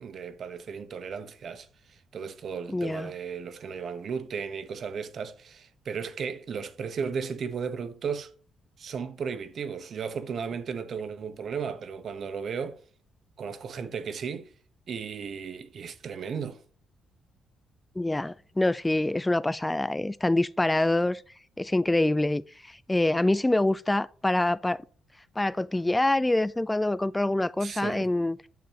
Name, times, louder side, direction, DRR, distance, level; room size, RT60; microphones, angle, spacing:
voice 1, 0.0-8.3 8.8-12.8 13.4-14.5 14.9-16.6 27.6-28.1, right 6 dB, 55° right, 1.0 m, -35 dB
voice 2, 2.7-3.1 18.0-21.2 21.6-24.8 25.4-28.4, left 2 dB, 10° left, 0.3 m, -25 dB
9.2 x 6.7 x 2.8 m
cardioid pair, 90°, 0 cm